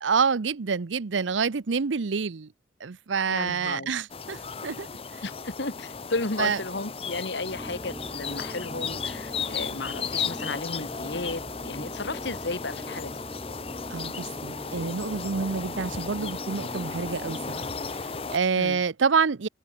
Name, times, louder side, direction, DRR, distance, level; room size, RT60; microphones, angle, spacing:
voice 1, 0.0-2.5 2.8-4.9 6.4-6.6 13.9-17.7 18.0-19.5, right 5 dB, 85° right, 0.7 m, -27 dB
voice 2, 3.3-3.9 5.2-13.2 18.6-18.8, left 3 dB, 70° left, 1.7 m, -34 dB
sound 1, 4.1-18.4, left 5 dB, 30° left, 0.7 m, -35 dB
sound 2, 7.4-17.8, equal, 15° right, 4.1 m, -42 dB
open air
head